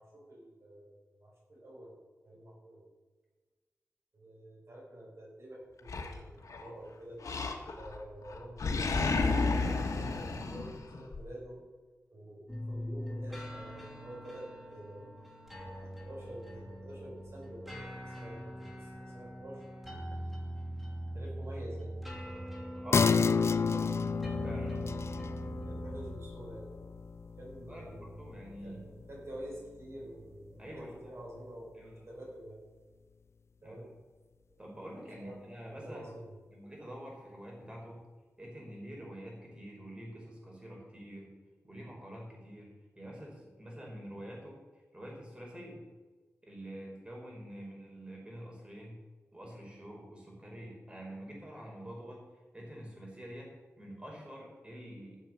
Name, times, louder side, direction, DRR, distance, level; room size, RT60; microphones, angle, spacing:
voice 1, 0.0-1.9 2.2-2.8 4.1-7.2 7.8-11.6 12.1-12.4 12.7-15.0 15.5-19.6 21.1-21.9 22.8-23.4 23.7-23.9 25.6-26.7 27.2-28.3 28.6-32.6 33.6-33.9 34.5-34.6 35.2-35.4 35.7-36.3, right 1 dB, 55° right, -4 dB, 5.3 m, -48 dB
Animal, 5.9-6.7 7.2-8.0 8.3-11.2, left 3 dB, 85° left, 1.6 m, -32 dB
sound 1, 12.5-26.1, equal, ahead, 3.1 m, -42 dB
voice 2, 22.8-23.3 24.4-24.9 27.7-28.8 30.6-31.1 31.7-32.0 33.6-33.8 34.6-36.0 36.5-38.0 38.4-41.3 41.6-44.6 44.9-45.9 46.4-49.0 49.3-52.2 52.5-55.2, equal, 20° right, -2 dB, 5.2 m, -47 dB
sound 2, 22.9-29.9 30.3-30.4, left 5 dB, 55° left, 0.4 m, -32 dB
14.0 x 7.3 x 7.6 m, 1.3 s
wide cardioid pair, 95°, 6 cm